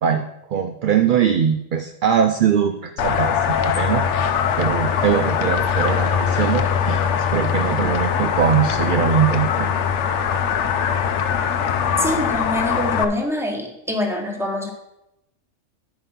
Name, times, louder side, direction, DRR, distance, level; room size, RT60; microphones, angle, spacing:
voice 1, 0.0-4.1 4.6-9.7, right 8 dB, 60° right, 7 dB, 0.5 m, -21 dB
sound 1, 3.0-13.0, left 7 dB, 70° left, 0.9 m, -21 dB
voice 2, 12.0-14.7, left 1 dB, ahead, 2 dB, 1.3 m, -24 dB
9.1 x 5.4 x 5.6 m, 0.87 s
omnidirectional pair, 1.3 m